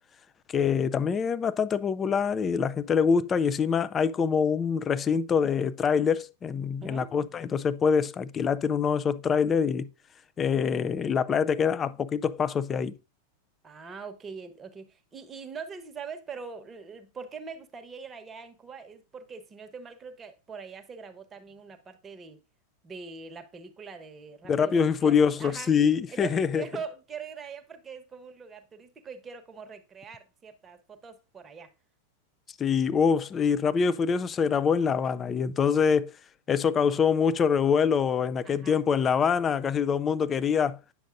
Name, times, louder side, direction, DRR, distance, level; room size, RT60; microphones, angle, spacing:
voice 1, 0.5-9.9 10.4-13.0 24.5-26.6 32.6-36.1 36.5-40.8, left 6 dB, 25° left, 0.4 m, -25 dB
voice 2, 6.8-7.1 11.8-11.9 13.6-22.4 22.8-25.7 26.1-31.7 38.4-38.8, right 5 dB, 20° right, 1.1 m, -42 dB
9.5 x 6.3 x 2.6 m
hypercardioid pair, 100°, 0 cm